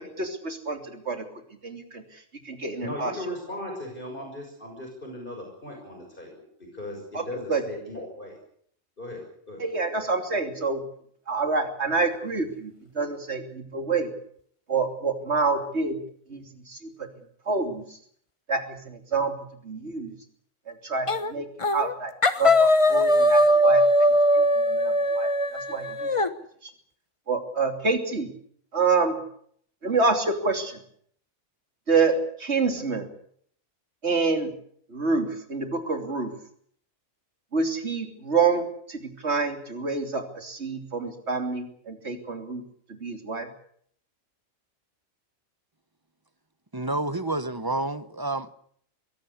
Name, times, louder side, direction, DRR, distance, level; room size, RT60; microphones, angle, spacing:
voice 1, 0.2-1.3 1.6-2.0 2.4-3.1 7.1-7.2 7.5-7.6 9.6-10.8 11.3-14.1 14.7-16.0 16.3-17.1 17.5-17.8 18.5-19.4 19.6-20.1 20.7-21.4 21.7-22.1 22.4-26.1 27.3-28.3 28.7-29.2 29.8-30.8 31.9-33.1 34.0-34.5 34.9-36.3 37.5-42.6 42.9-43.5, right 4 dB, 60° right, 5 dB, 3.3 m, -27 dB
voice 2, 2.8-8.4 9.0-9.6, left 1 dB, 40° left, 1 dB, 6.4 m, -38 dB
sound 1, 21.1-21.3 21.6-21.9 22.2-26.3, left 1 dB, 25° left, 1.1 m, -20 dB
voice 3, 46.7-48.5, right 2 dB, 20° right, 13 dB, 1.0 m, -29 dB
23.0 x 17.5 x 8.3 m, 0.64 s
omnidirectional pair, 1.3 m